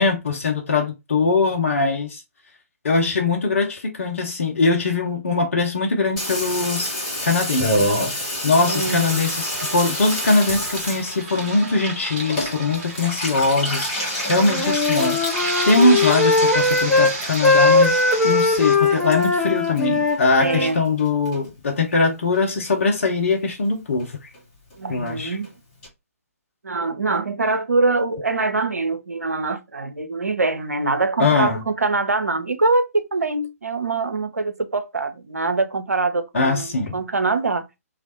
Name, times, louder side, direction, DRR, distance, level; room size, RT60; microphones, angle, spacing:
voice 1, 0.0-2.2 2.8-6.9 7.2-24.2 24.9-25.4 31.2-31.6 36.3-37.0, left 3 dB, 55° left, 0.7 m, -21 dB
Water tap faucet / Bathtub (filling or washing), 6.2-20.7 21.0-21.7 22.0-22.1 22.3-22.4 22.6-23.0 23.3-23.4 23.6-23.7 24.0-24.1 24.3-24.4 24.7-24.8 25.1-25.2 25.4-25.5 25.8-25.9, left 1 dB, 30° left, 1.3 m, -29 dB
sound 1, 8.6-18.8, right 3 dB, 25° right, 1.1 m, -32 dB
voice 2, 8.6-9.3 20.4-20.8 24.8-25.5 26.6-37.6, right 3 dB, 75° right, 0.6 m, -24 dB
Wind instrument woodwind instrument, 14.3-17.2 17.4-20.7, left 3 dB, 5° left, 0.4 m, -19 dB
3.2 x 2.4 x 2.8 m
figure-of-eight pair, 135°, 8 cm